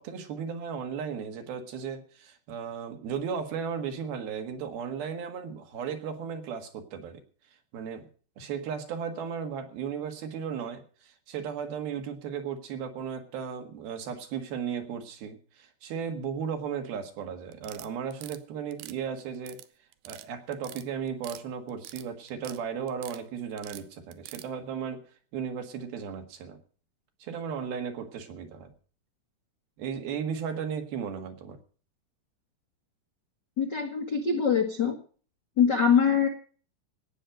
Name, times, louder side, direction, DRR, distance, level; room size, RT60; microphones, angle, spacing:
voice 1, 0.0-7.2 7.7-8.1 8.4-19.6 20.1-25.0 25.3-26.6 27.2-28.7 29.8-31.6, right 7 dB, 70° right, 6 dB, 3.6 m, -35 dB
sound 1, 17.5-18.4 18.7-19.7 19.9-20.3 20.5-21.4 21.7-22.6 22.9-23.2 23.6-24.5, right 15 dB, 85° right, 2.9 m, -45 dB
voice 2, 33.6-34.9 35.6-36.3, left 6 dB, 65° left, 4 dB, 1.0 m, -23 dB
17.5 x 6.4 x 9.2 m, 0.42 s
omnidirectional pair, 4.7 m